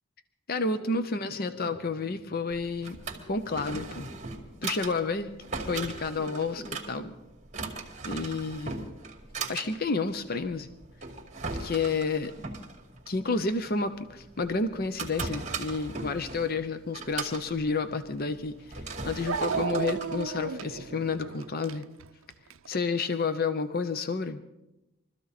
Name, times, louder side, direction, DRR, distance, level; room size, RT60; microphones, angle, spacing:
voice 1, 0.5-3.0 3.3-4.1 4.6-5.3 5.6-7.1 8.0-8.9 9.5-10.7 11.6-12.3 13.1-21.8 22.7-24.4, left 4 dB, 45° left, 10 dB, 0.7 m, -30 dB
sound 1, 0.8-7.1, left 2 dB, 30° left, 1.8 m, -48 dB
Drawer open or close, 2.5-21.1, right 4 dB, 35° right, 2.3 m, -39 dB
Dog, 18.2-18.3 19.3-22.7, right 6 dB, 70° right, 0.6 m, -33 dB
23.5 x 13.5 x 4.2 m, 0.94 s
head